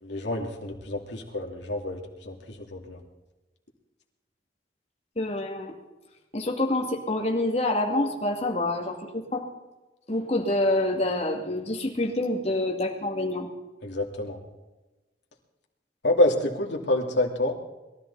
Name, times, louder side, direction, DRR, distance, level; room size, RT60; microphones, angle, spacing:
voice 1, 0.0-3.0 13.8-14.4 16.0-17.5, left 1 dB, 85° left, 0 dB, 2.7 m, -27 dB
voice 2, 5.2-5.7 6.3-9.5 10.1-13.5, left 1 dB, 35° left, 1 dB, 2.5 m, -27 dB
22.0 x 14.0 x 4.1 m, 1.1 s
head